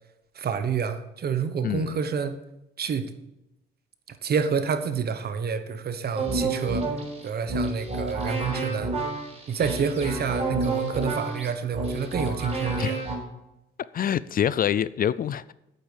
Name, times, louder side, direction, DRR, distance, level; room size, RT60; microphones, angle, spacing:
voice 1, 0.3-2.4 2.8-3.1 4.1-6.9 7.2-8.9 9.5-13.0, right 6 dB, 50° right, 1.2 m, -28 dB
voice 2, 1.6-2.0 12.8-12.9 13.9-15.5, left 9 dB, 45° left, 0.4 m, -26 dB
sound 1, 6.1-13.1, right 2 dB, 30° right, 4.9 m, -29 dB
8.5 x 8.5 x 7.3 m
cardioid pair, 90°, 20 cm